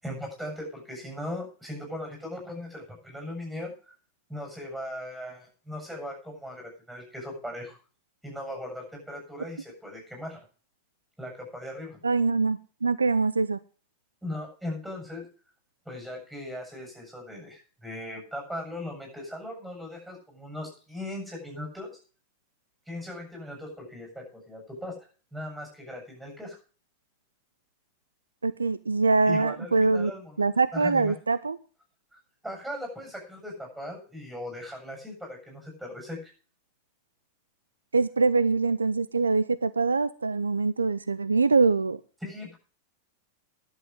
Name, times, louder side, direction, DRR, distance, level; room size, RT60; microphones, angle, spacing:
voice 1, 0.0-3.7 4.3-7.8 8.2-10.4 11.2-12.0 14.2-15.3 15.9-22.0 22.9-26.6 29.2-31.1 32.4-36.3 42.2-42.6, left 1 dB, ahead, 1 dB, 7.8 m, -38 dB
voice 2, 12.0-13.6 28.4-30.1 30.4-31.6 37.9-42.0, right 3 dB, 75° right, 14 dB, 0.5 m, -24 dB
11.5 x 7.7 x 7.5 m, 0.38 s
figure-of-eight pair, 90°, 0 cm